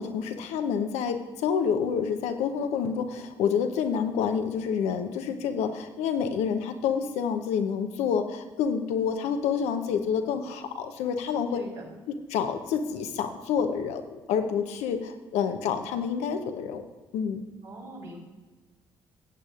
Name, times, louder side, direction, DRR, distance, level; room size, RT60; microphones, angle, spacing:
voice 1, 0.0-11.6 12.1-16.8 17.1-17.4, left 7 dB, 80° left, 7 dB, 0.8 m, -28 dB
voice 2, 11.5-11.8 17.6-18.2, right 2 dB, 80° right, -6 dB, 3.0 m, -42 dB
13.5 x 8.3 x 2.5 m, 1.3 s
supercardioid pair, 55°, 11 cm